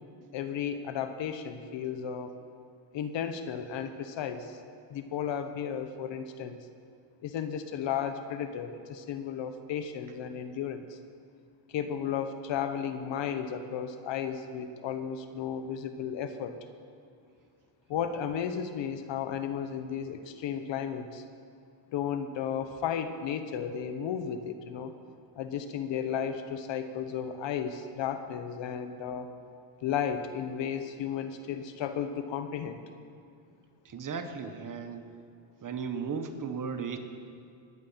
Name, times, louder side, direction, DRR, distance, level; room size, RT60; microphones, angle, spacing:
voice 1, 0.3-2.3 2.9-4.6 4.9-6.6 7.2-11.0 11.7-16.5 17.9-21.2 21.9-24.9 25.4-29.3 29.8-32.8, left 8 dB, 60° left, 9 dB, 1.3 m, -34 dB
voice 2, 33.8-35.1 35.6-37.0, right 6 dB, 40° right, 6 dB, 1.6 m, -35 dB
21.0 x 8.7 x 5.8 m, 2.4 s
supercardioid pair, 85°, 49 cm